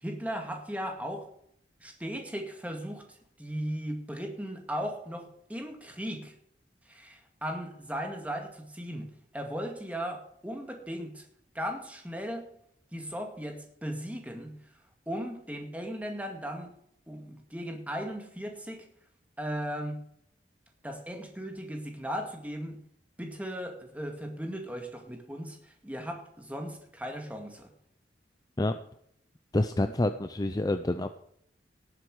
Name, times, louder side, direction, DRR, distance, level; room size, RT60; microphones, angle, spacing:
voice 1, 0.0-1.3 1.8-6.3 6.9-11.3 11.5-12.5 12.9-14.6 15.1-16.7 17.1-18.9 19.4-20.0 20.8-22.8 23.2-27.7, equal, 10° right, 4 dB, 2.0 m, -37 dB
voice 2, 29.5-31.1, left 1 dB, 20° left, 9 dB, 0.5 m, -27 dB
18.0 x 7.8 x 4.8 m, 0.69 s
head